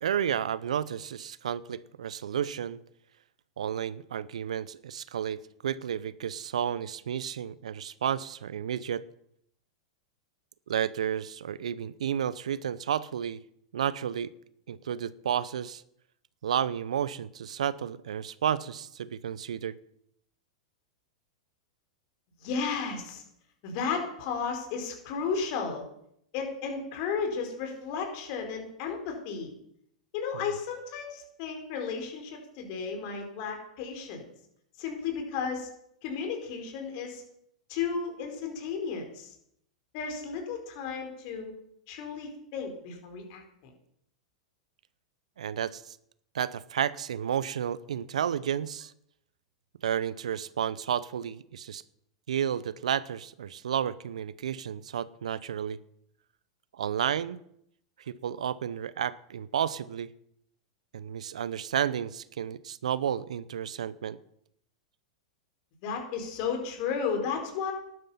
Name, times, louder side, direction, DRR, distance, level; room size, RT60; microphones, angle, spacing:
voice 1, 0.0-2.8 3.6-9.0 10.7-13.4 13.7-14.3 14.7-15.8 16.4-19.7 30.3-30.5 45.4-46.0 46.3-48.9 49.8-51.8 52.3-55.8 56.7-57.4 58.1-60.1 60.9-64.2, right 9 dB, 80° right, 18 dB, 0.6 m, -32 dB
voice 2, 22.4-23.2 23.6-25.8 26.3-29.5 30.1-34.2 34.8-35.7 36.0-37.2 37.7-39.4 39.9-41.5 41.9-43.7 65.8-67.7, left 5 dB, 55° left, 3 dB, 4.6 m, -33 dB
13.0 x 11.0 x 5.6 m, 0.73 s
hypercardioid pair, 110°, 4 cm